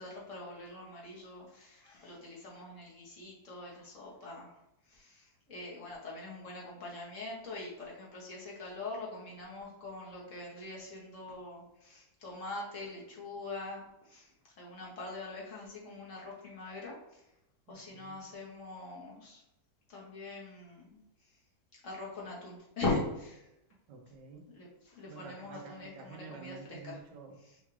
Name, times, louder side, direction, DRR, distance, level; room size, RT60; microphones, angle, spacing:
voice 1, 0.0-4.5 4.9-14.3 14.6-17.2 17.7-19.4 19.9-21.0 21.8-23.4 24.5-27.0, left 2 dB, 50° left, -4 dB, 1.3 m, -42 dB
voice 2, 17.7-18.3 23.9-24.6 25.1-27.6, right 4 dB, 85° right, 3 dB, 1.3 m, -49 dB
5.7 x 2.4 x 3.1 m, 0.87 s
omnidirectional pair, 1.8 m